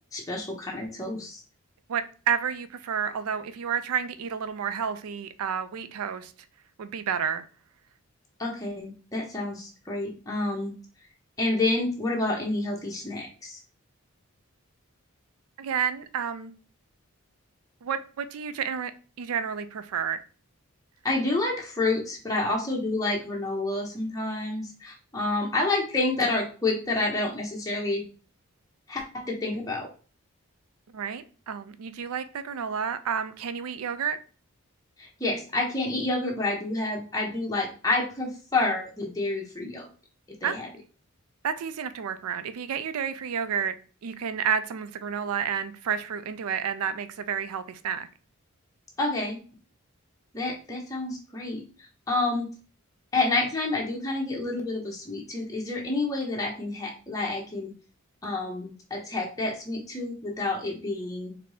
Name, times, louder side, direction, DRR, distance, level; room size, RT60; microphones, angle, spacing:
voice 1, 0.1-1.4 8.4-10.8 11.4-13.6 21.0-28.0 28.9-29.9 35.0-39.9 40.4-40.7 49.0-49.4 50.3-51.6 52.1-52.5 53.1-57.7 58.2-61.3, left 2 dB, 15° left, 0.7 m, -29 dB
voice 2, 1.9-6.3 6.8-7.4 15.6-16.5 17.8-18.9 19.2-20.2 30.9-34.2 40.4-40.6 41.4-43.7 44.0-48.1, right 7 dB, 80° right, 0.4 m, -30 dB
4.3 x 2.6 x 3.2 m
head